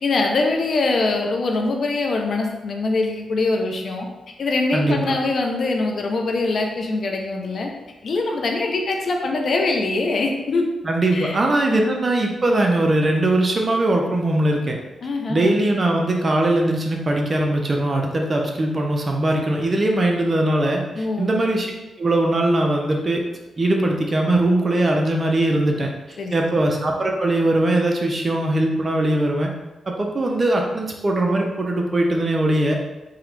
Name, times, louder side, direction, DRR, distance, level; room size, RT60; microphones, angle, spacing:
voice 1, 0.0-4.1 4.4-7.7 8.0-10.6 11.1-11.4 11.7-11.9 15.0-15.5 20.9-21.3 26.2-26.6, left 3 dB, 60° left, 2 dB, 0.6 m, -23 dB
voice 2, 4.7-5.2 10.8-14.8 15.3-21.7 22.0-23.2 23.6-25.9 26.3-29.5 29.9-32.8, right 1 dB, 35° right, 1 dB, 0.7 m, -20 dB
3.8 x 2.9 x 3.3 m, 1.1 s
cardioid pair, 80°, 0 cm